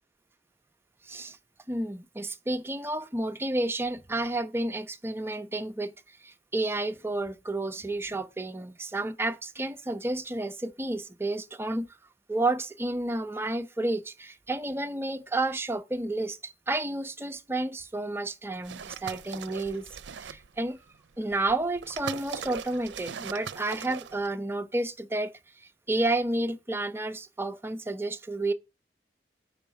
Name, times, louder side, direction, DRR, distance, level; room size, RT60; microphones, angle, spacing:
voice 1, 1.0-1.4 1.7-11.9 12.3-20.8 21.2-28.5, right 2 dB, 15° right, 0.6 m, -31 dB
sound 1, 18.6-20.6 21.3-24.3, right 7 dB, 75° right, 0.5 m, -40 dB
7.0 x 5.1 x 5.7 m
head